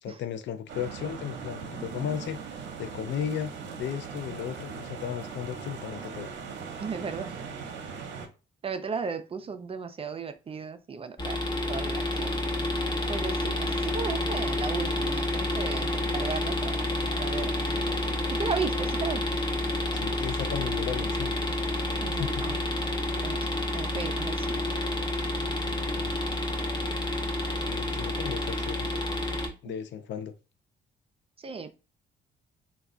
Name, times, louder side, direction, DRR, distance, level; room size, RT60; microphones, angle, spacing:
voice 1, 0.0-3.5 3.8-6.3 19.9-21.4 22.1-22.4 25.7-26.2 27.6-28.9 29.6-30.3, left 9 dB, 65° left, 0.4 m, -35 dB
sound 1, 0.7-8.3, right 5 dB, 65° right, 0.7 m, -40 dB
voice 2, 6.8-7.4 8.6-11.4 11.7-12.5 13.1-16.7 17.1-17.9 18.4-19.2 22.0-22.6 23.2-23.5 23.7-24.6 29.6-29.7 31.4-31.7, right 5 dB, 30° right, 0.3 m, -35 dB
sound 2, 11.2-29.5, left 1 dB, 20° left, 0.7 m, -29 dB
2.3 x 2.1 x 3.6 m
cardioid pair, 90°, 20 cm